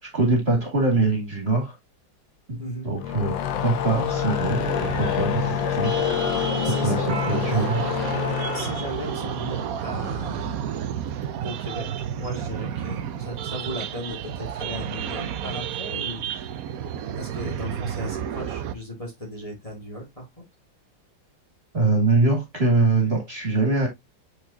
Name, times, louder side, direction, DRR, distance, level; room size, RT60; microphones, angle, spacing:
voice 1, 0.1-1.7 2.5-6.2 6.6-7.8 21.7-23.9, right 3 dB, 35° right, 2.5 m, -23 dB
voice 2, 2.6-2.9 6.6-7.7 8.5-10.6 11.4-11.9 12.2-16.5 17.1-20.5, equal, 20° left, 2.5 m, -36 dB
sound 1, 2.9-10.3, left 10 dB, 85° left, 1.5 m, -27 dB
sound 2, 3.9-18.7, right 9 dB, 65° right, 1.0 m, -31 dB
8.6 x 4.9 x 2.8 m
omnidirectional pair, 2.0 m